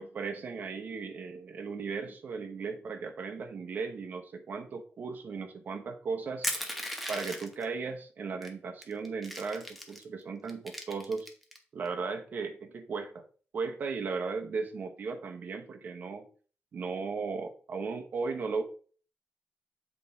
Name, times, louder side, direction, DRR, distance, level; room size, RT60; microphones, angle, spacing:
voice 1, 0.0-6.5 7.1-11.3 11.7-13.2 13.5-16.3 16.7-18.6, right 4 dB, 45° right, 6 dB, 1.0 m, -36 dB
Crushing, 6.4-7.6 8.4-8.5 8.8-10.0 10.5-11.6, equal, ahead, 1.0 m, -36 dB
7.7 x 4.4 x 4.1 m, 0.42 s
wide cardioid pair, 175°, 4 cm